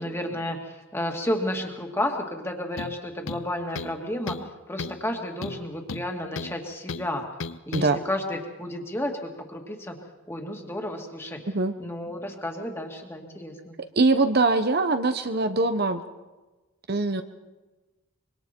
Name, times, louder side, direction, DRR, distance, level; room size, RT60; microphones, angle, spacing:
voice 1, 0.0-4.4 4.7-7.2 7.7-10.0 10.3-11.4 11.8-13.8, left 1 dB, 10° left, 2 dB, 2.3 m, -32 dB
sound 1, 2.8-3.0 3.3-4.0 4.3-4.5 4.8-5.0 5.4-6.6 6.9-7.1 7.4-7.9, left 4 dB, 65° left, 0.7 m, -34 dB
voice 2, 14.0-16.0 16.9-17.2, right 3 dB, 50° right, 8 dB, 0.9 m, -22 dB
25.5 x 23.5 x 4.5 m, 1.2 s
head